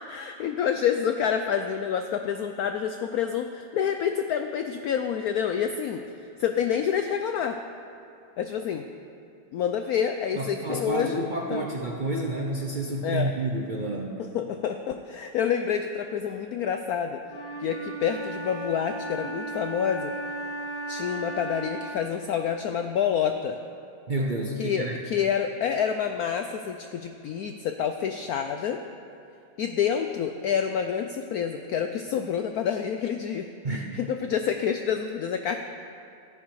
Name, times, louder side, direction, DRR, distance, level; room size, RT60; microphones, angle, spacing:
voice 1, 0.0-6.0 6.4-7.6 8.4-8.9 9.5-11.7 13.0-13.3 14.2-17.2 17.6-20.1 20.9-23.6 24.6-28.8 29.6-35.6, left 8 dB, 75° left, 7 dB, 0.8 m, -28 dB
voice 2, 10.4-14.3 24.1-25.0 33.6-33.8, right 2 dB, 70° right, 0 dB, 0.4 m, -29 dB
Wind instrument woodwind instrument, 17.3-22.1, right 2 dB, 50° left, 2.7 m, -35 dB
13.5 x 11.0 x 4.8 m, 2.6 s
omnidirectional pair, 2.1 m